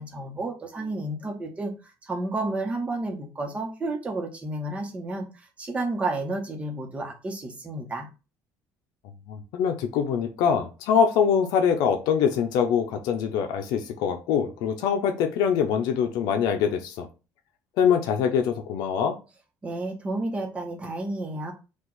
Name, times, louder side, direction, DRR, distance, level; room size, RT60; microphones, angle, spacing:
voice 1, 0.0-1.7 2.0-8.1 19.6-21.5, right 2 dB, 20° right, 2 dB, 1.0 m, -31 dB
voice 2, 9.0-17.1 17.8-19.2, left 7 dB, 85° left, 6 dB, 0.6 m, -24 dB
4.8 x 2.5 x 3.9 m, 0.31 s
cardioid pair, 155°, 7 cm